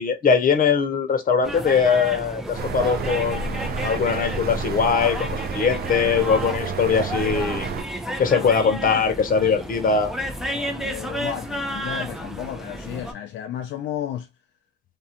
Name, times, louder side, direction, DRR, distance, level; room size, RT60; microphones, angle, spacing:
voice 1, 0.0-7.7 8.2-10.1, left 6 dB, 45° left, 0.8 m, -21 dB
sound 1, 1.4-13.1, equal, ahead, 0.6 m, -32 dB
sound 2, 2.5-7.8, right 5 dB, 50° right, 0.4 m, -30 dB
voice 2, 10.5-14.3, left 10 dB, 70° left, 0.4 m, -33 dB
2.5 x 2.3 x 2.7 m
cardioid pair, 90°, 20 cm